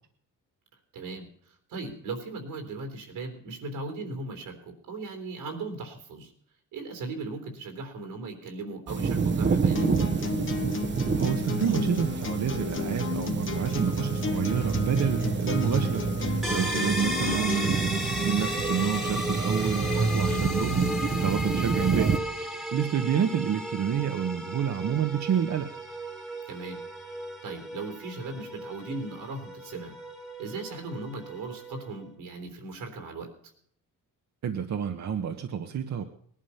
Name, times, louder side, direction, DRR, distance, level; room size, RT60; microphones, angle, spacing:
voice 1, 0.9-6.3 6.7-10.1 16.7-16.9 20.2-20.4 26.5-26.8 27.0-29.9 30.4-33.3, right 3 dB, 85° right, 7 dB, 3.6 m, -38 dB
sound 1, 8.9-22.2, right 5 dB, 35° right, 1.1 m, -28 dB
sound 2, 9.8-17.7, left 5 dB, 35° left, 1.4 m, -33 dB
voice 2, 11.1-25.7 34.4-36.0, right 8 dB, 55° right, 5 dB, 1.2 m, -29 dB
sound 3, 16.4-32.0, left 1 dB, ahead, 1.8 m, -35 dB
19.0 x 11.5 x 5.7 m, 0.64 s
cardioid pair, 120°, 33 cm